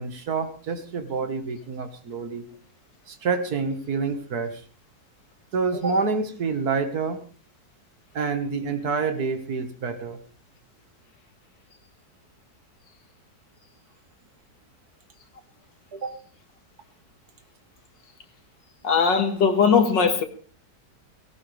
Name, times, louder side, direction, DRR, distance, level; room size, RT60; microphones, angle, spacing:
voice 1, 0.0-2.5 3.1-4.6 5.5-7.2 8.1-10.2 15.9-16.2, right 4 dB, 60° right, 2.0 m, -27 dB
voice 2, 18.8-20.2, left 6 dB, 90° left, 2.4 m, -19 dB
18.0 x 17.5 x 3.4 m
omnidirectional pair, 1.9 m